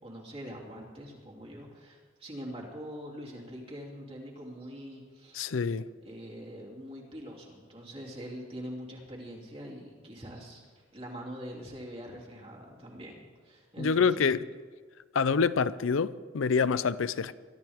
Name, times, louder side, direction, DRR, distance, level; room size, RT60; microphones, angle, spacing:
voice 1, 0.0-5.5 6.0-14.3, equal, 30° right, -2 dB, 2.9 m, -43 dB
voice 2, 5.3-5.9 13.8-14.4 15.1-17.3, left 5 dB, 85° left, 16 dB, 0.5 m, -26 dB
22.5 x 13.5 x 3.6 m, 1.5 s
head